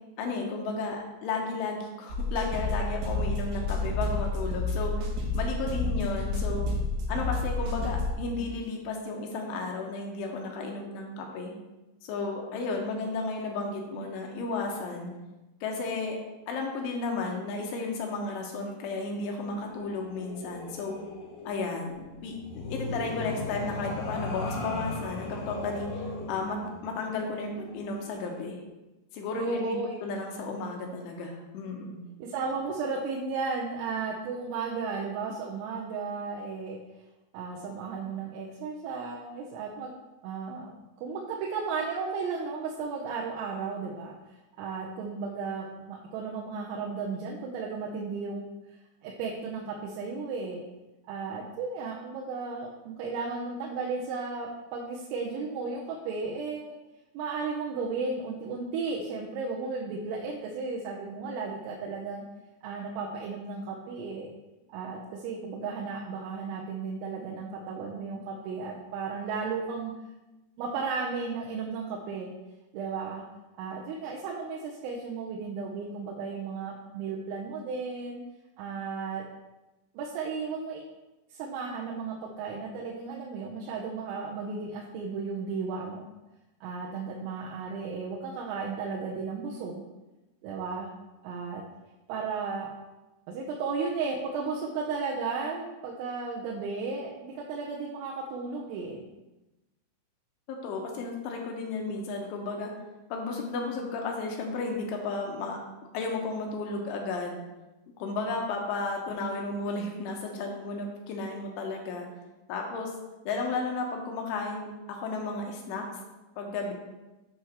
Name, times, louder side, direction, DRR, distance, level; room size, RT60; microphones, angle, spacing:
voice 1, 0.2-5.0 5.3-6.7 7.1-11.5 12.0-15.1 15.6-16.2 16.5-21.0 21.5-21.9 22.2-28.6 29.1-29.8 30.0-32.0 100.5-102.7 103.1-105.6 105.9-107.4 108.0-112.1 112.5-112.9 113.3-115.9 116.4-116.7, left 3 dB, 80° left, 1 dB, 3.4 m, -33 dB
sound 1, 2.1-8.1, left 2 dB, 65° right, 2.2 m, -30 dB
sound 2, 19.4-28.4, left 2 dB, 65° left, 2.6 m, -38 dB
voice 2, 29.4-29.9 32.2-36.8 37.3-39.9 40.2-48.5 49.0-50.6 51.1-56.7 57.2-62.2 62.6-64.3 64.7-69.9 70.6-72.3 72.7-73.3 73.6-78.2 78.6-79.2 80.0-80.8 81.3-86.1 86.6-89.8 90.4-90.9 91.2-91.6 92.1-92.7 93.3-99.0, right 4 dB, 85° right, -3 dB, 3.6 m, -34 dB
8.6 x 4.3 x 6.5 m, 1.0 s
omnidirectional pair, 5.8 m